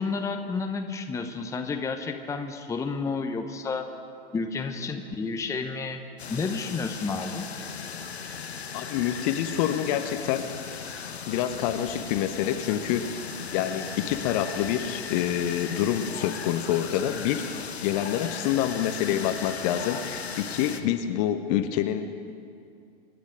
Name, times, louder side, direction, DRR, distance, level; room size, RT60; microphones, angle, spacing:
voice 1, 0.0-3.9 4.3-6.0 6.3-7.5, left 4 dB, 10° left, 6 dB, 0.9 m, -31 dB
sound 1, 6.2-20.8, left 6 dB, 75° left, 1.3 m, -37 dB
voice 2, 8.7-10.5 11.3-13.2 13.5-22.3, left 10 dB, 40° left, 8 dB, 1.0 m, -27 dB
26.0 x 10.5 x 5.1 m, 2.4 s
figure-of-eight pair, 105°, 32 cm